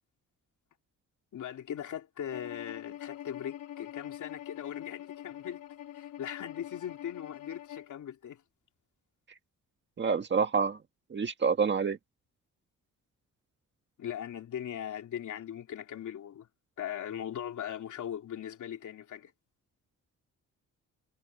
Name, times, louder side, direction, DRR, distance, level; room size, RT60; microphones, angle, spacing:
voice 1, 1.3-5.6 5.9-8.4 14.0-16.5 16.8-19.3, left 9 dB, 65° left, 3.1 m, -39 dB
Bowed string instrument, 2.3-7.9, left 12 dB, 90° left, 4.6 m, -44 dB
voice 2, 10.0-10.8 11.1-12.0, right 5 dB, 35° right, 1.7 m, -27 dB
wide cardioid pair, 155°, 32 cm